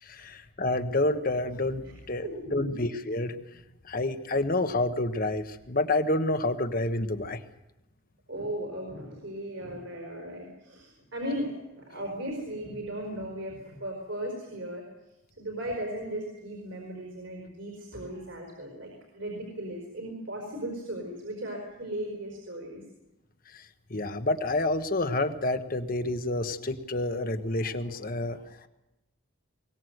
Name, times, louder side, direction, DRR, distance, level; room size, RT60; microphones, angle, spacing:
voice 1, 0.0-2.2 2.5-7.4 23.5-28.7, left 2 dB, 45° left, 9 dB, 1.3 m, -29 dB
voice 2, 2.2-2.8 8.3-14.8 15.4-22.8, right 1 dB, 65° right, 1 dB, 4.7 m, -37 dB
22.0 x 19.5 x 7.9 m, 0.94 s
head